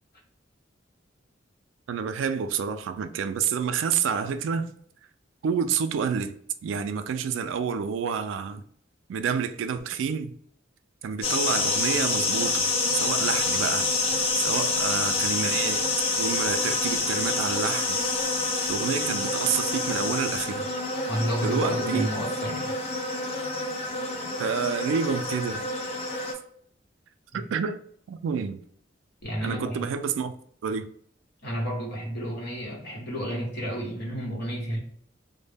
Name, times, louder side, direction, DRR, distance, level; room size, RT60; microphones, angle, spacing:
voice 1, 1.9-4.7 5.4-6.4 6.6-8.6 9.1-10.3 11.0-12.7 12.9-13.9 14.3-18.0 18.7-20.7 21.4-22.1 24.4-25.7 27.3-27.8 28.1-28.6 29.4-30.3 30.6-30.9, right 6 dB, 85° right, 0.3 m, -28 dB
sound 1, 11.2-26.3, left 3 dB, 30° left, 0.5 m, -27 dB
voice 2, 21.1-22.8 23.1-23.2 27.3-27.4 29.2-29.9 31.4-34.8, equal, 55° left, 1.1 m, -31 dB
2.1 x 2.1 x 3.2 m
head